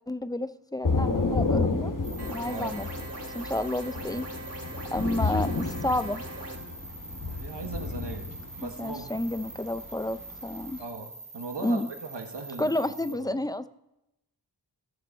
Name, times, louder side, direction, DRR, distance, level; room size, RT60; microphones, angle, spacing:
voice 1, 0.1-1.9 2.3-2.9 3.3-4.2 4.9-6.2 8.6-10.8 11.6-11.9 12.6-13.7, left 1 dB, 10° left, 13 dB, 0.4 m, -30 dB
Thunder / Rain, 0.8-10.8, left 3 dB, 45° left, 1.2 m, -31 dB
sound 1, 2.0-13.1, right 3 dB, 55° right, 1.9 m, -45 dB
sound 2, 2.2-6.6, right 1 dB, 35° right, 2.8 m, -41 dB
voice 2, 2.4-2.8 7.2-9.2 10.8-12.8 13.1-13.4, right 3 dB, 70° right, 4 dB, 1.5 m, -39 dB
15.5 x 6.8 x 4.5 m, 0.87 s
wide cardioid pair, 50°, 43 cm